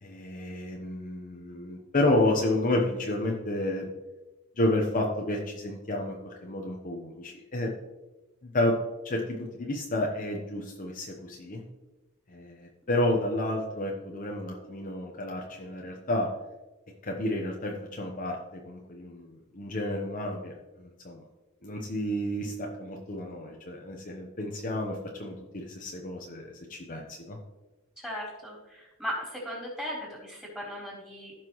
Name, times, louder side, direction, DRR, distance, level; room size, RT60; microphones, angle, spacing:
voice 1, 0.0-3.8 4.6-7.7 8.4-8.7 9.0-11.6 12.3-16.3 17.0-21.2 21.6-27.4, left 1 dB, 40° left, 0 dB, 0.9 m, -31 dB
voice 2, 28.0-31.3, equal, 5° right, -5 dB, 3.5 m, -37 dB
15.5 x 5.9 x 3.1 m, 1.1 s
head